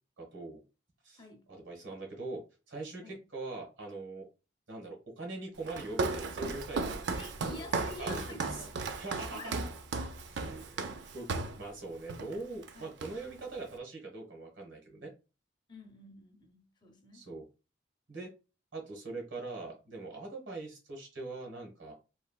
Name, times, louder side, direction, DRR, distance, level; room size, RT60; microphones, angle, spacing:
voice 1, 0.2-0.6 1.0-1.2 1.5-2.4 2.7-4.3 4.7-7.0 7.4-7.5 8.0-8.6 9.0-9.6 10.3-10.9 11.1-11.3 11.6-15.1 17.1-17.4 18.1-18.3 18.7-21.9, right 3 dB, 85° right, 1.3 m, -42 dB
Walk footsteps, 5.6-11.6 12.1-12.4 12.6-13.4, right 3 dB, 65° right, 0.4 m, -35 dB
voice 2, 7.1-8.8 9.3-9.7 12.7-12.9 15.7-17.2, left 2 dB, 25° left, 0.6 m, -49 dB
3.2 x 2.8 x 2.2 m
head